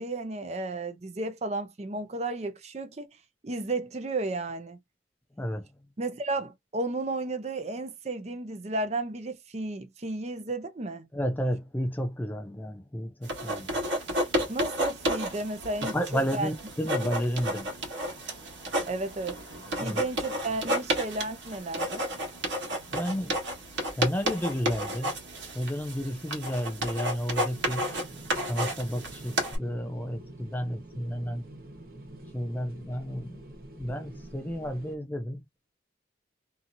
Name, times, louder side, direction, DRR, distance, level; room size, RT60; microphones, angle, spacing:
voice 1, 0.0-3.1 3.4-4.8 6.0-11.1 14.5-16.5 18.9-19.4 19.8-22.1, right 2 dB, 35° right, 0.5 m, -33 dB
voice 2, 11.1-13.7 15.9-17.7 19.8-20.0 22.9-23.3 24.0-25.1 25.6-27.9 28.5-29.3 29.6-31.4 32.3-33.4 33.8-35.4, equal, 10° left, 0.3 m, -31 dB
sound 1, 13.2-29.6, right 1 dB, 90° right, 1.4 m, -32 dB
sound 2, 27.5-35.0, right 1 dB, 50° right, 1.0 m, -47 dB
2.8 x 2.7 x 2.5 m
head